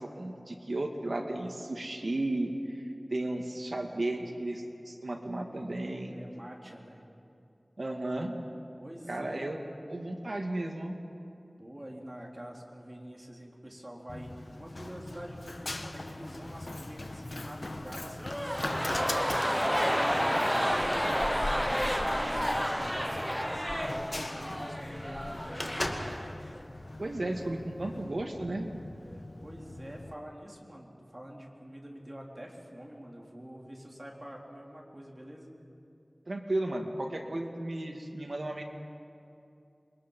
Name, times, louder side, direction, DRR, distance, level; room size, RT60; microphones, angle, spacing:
voice 1, 0.0-2.8 3.1-6.2 7.8-8.4 9.1-9.6 9.9-11.0 27.0-28.8 36.3-38.6, right 1 dB, 70° right, 2 dB, 2.3 m, -34 dB
voice 2, 6.1-7.0 8.8-9.4 11.6-14.3 14.6-21.4 21.7-26.4 29.0-35.5, equal, 25° right, -1 dB, 3.7 m, -46 dB
Run, 14.1-30.1, left 2 dB, 60° left, 1.1 m, -41 dB
sound 1, 18.2-26.3 26.6-26.7, equal, ahead, 0.6 m, -30 dB
sound 2, 18.8-26.3 26.8-27.2 27.6-27.8, left 1 dB, 25° left, 2.3 m, -40 dB
28.0 x 23.5 x 5.6 m, 2.7 s
wide cardioid pair, 55°, 0 cm